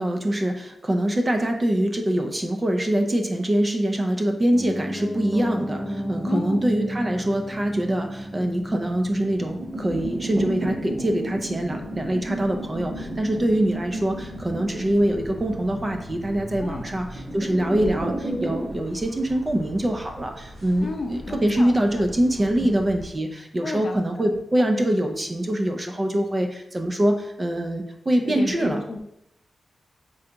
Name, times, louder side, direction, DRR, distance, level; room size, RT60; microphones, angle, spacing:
voice 1, 0.0-28.8, right 1 dB, 25° right, 4 dB, 0.4 m, -24 dB
Piano, 4.5-14.5 14.8-14.9, equal, 20° left, 0.9 m, -34 dB
voice 2, 6.3-6.6 16.6-16.9 20.8-22.1 22.6-22.7 23.6-24.4 28.2-29.0, left 3 dB, 45° left, 4 dB, 0.5 m, -33 dB
sound 1, 7.7-23.1, equal, 75° right, 1.5 m, -43 dB
sound 2, 9.4-18.6, right 1 dB, 55° right, 1.6 m, -33 dB
3.8 x 3.3 x 3.8 m, 0.80 s
wide cardioid pair, 145°, 0 cm